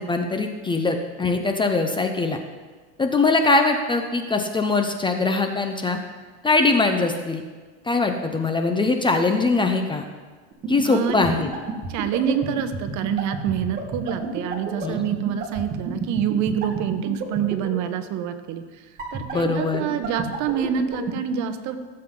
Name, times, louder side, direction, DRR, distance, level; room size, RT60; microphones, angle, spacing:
voice 1, 0.0-2.4 3.0-6.0 6.4-7.4 7.8-10.0 10.7-11.5 14.8-15.0 19.3-19.9, left 3 dB, 15° left, 5 dB, 0.7 m, -22 dB
sound 1, 10.5-17.7 19.0-21.1, right 7 dB, 25° right, 2.6 m, -28 dB
voice 2, 10.8-11.2 11.9-18.9 19.1-21.8, right 9 dB, 50° right, 9 dB, 1.1 m, -26 dB
16.5 x 7.7 x 3.8 m, 1.4 s
supercardioid pair, 130°, 37 cm